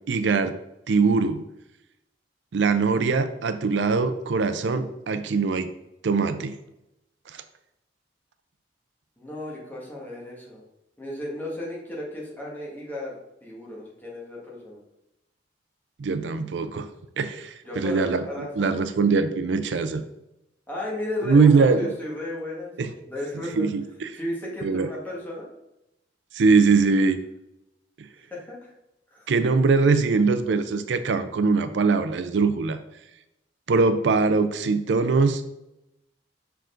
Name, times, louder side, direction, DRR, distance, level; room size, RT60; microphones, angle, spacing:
voice 1, 0.1-0.5 0.9-1.4 2.5-5.7 6.0-6.5 7.3-7.4 16.0-16.9 17.2-20.0 21.2-21.9 22.8-22.9 23.6-24.1 24.6-24.9 26.3-27.2 29.3-32.8 33.7-35.5, right 4 dB, 75° right, 10 dB, 0.4 m, -22 dB
voice 2, 9.2-10.6 11.0-14.8 17.6-18.7 20.7-22.7 23.1-23.7 24.2-25.5 28.3-28.7 29.1-29.3, left 1 dB, 10° left, -4 dB, 1.7 m, -34 dB
6.2 x 4.6 x 3.8 m, 0.88 s
head